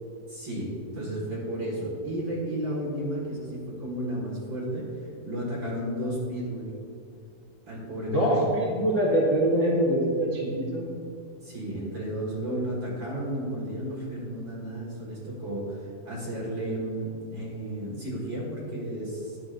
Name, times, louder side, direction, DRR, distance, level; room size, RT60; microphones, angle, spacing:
voice 1, 0.3-4.9 5.2-6.7 7.7-8.4 11.4-19.4, right 1 dB, 40° right, -5 dB, 2.1 m, -33 dB
voice 2, 8.1-10.8, right 1 dB, 55° left, -6 dB, 0.8 m, -24 dB
11.0 x 10.5 x 2.6 m, 2.4 s
omnidirectional pair, 4.2 m